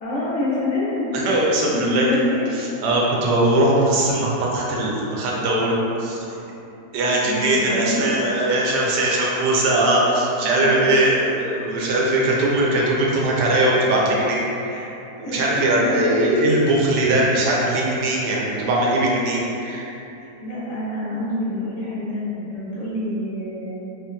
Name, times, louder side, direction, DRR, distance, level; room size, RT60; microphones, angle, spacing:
voice 1, 0.0-1.1 1.7-2.4 7.3-8.1 10.4-10.9 14.7-14.9 15.2-16.2 20.2-23.8, left 1 dB, 40° left, -10 dB, 0.5 m, -27 dB
voice 2, 1.1-2.1 2.6-6.2 6.9-14.8 15.2-19.9, right 1 dB, 85° right, -3 dB, 1.2 m, -20 dB
3.0 x 2.9 x 2.2 m, 2.8 s
omnidirectional pair, 1.8 m